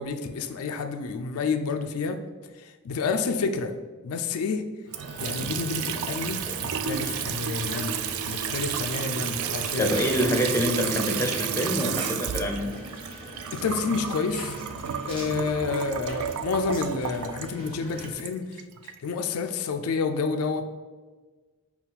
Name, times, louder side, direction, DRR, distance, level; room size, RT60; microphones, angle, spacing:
voice 1, 0.0-2.2 2.6-3.7 4.0-4.6 5.2-8.0 8.3-10.0 13.5-14.5 15.0-20.6, left 4 dB, 75° left, 7 dB, 0.4 m, -29 dB
sound 1, 4.9-18.1, equal, 25° right, 1.1 m, -41 dB
Water tap faucet / Sink (filling or washing) / Trickle dribble, 4.9-19.0, right 8 dB, 75° right, 0.3 m, -32 dB
voice 2, 9.8-12.7, equal, 10° left, 2 dB, 0.5 m, -26 dB
5.6 x 2.3 x 4.0 m, 1.4 s
head